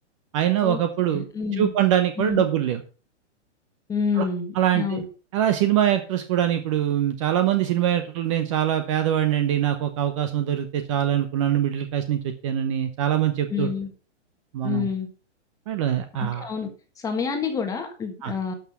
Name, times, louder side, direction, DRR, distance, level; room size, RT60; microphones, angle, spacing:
voice 1, 0.3-1.2 1.6-2.8 4.2-4.3 4.5-5.0 5.3-13.7 14.5-14.9 15.7-16.5 18.2-18.3, right 11 dB, 25° right, 8 dB, 0.8 m, -23 dB
voice 2, 1.1-1.7 2.2-2.5 3.9-5.0 13.5-13.9 14.6-15.1 16.2-16.7 17.0-18.5, left 6 dB, 10° left, 5 dB, 1.4 m, -28 dB
12.0 x 6.0 x 6.0 m, 0.36 s
hypercardioid pair, 160°, 36 cm